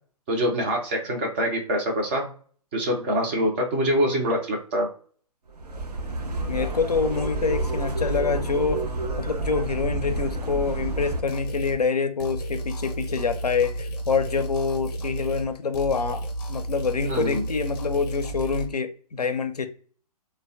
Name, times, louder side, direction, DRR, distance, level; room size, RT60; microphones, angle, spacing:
voice 1, 0.3-2.3 2.7-4.9 17.1-17.4, equal, 20° right, 0.3 m, -25 dB
sound 1, 5.5-11.2, right 2 dB, 75° right, 0.5 m, -29 dB
voice 2, 6.5-8.8 9.2-16.2 16.5-19.7, left 5 dB, 80° left, 0.4 m, -26 dB
sound 2, 11.3-11.8 12.2-15.5 15.7-18.7, right 1 dB, 35° left, 0.6 m, -32 dB
3.2 x 2.0 x 2.6 m
figure-of-eight pair, 125°, 20 cm